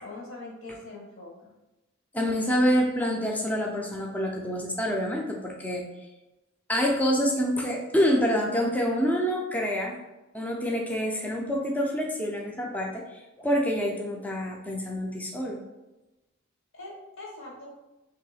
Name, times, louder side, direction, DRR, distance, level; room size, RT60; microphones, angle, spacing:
voice 1, 0.0-1.5 16.7-17.7, left 2 dB, 60° left, -2 dB, 1.1 m, -42 dB
voice 2, 2.1-5.8 6.7-10.0 10.3-15.6, equal, 5° left, -1 dB, 0.4 m, -27 dB
3.1 x 2.7 x 4.1 m, 1.0 s
head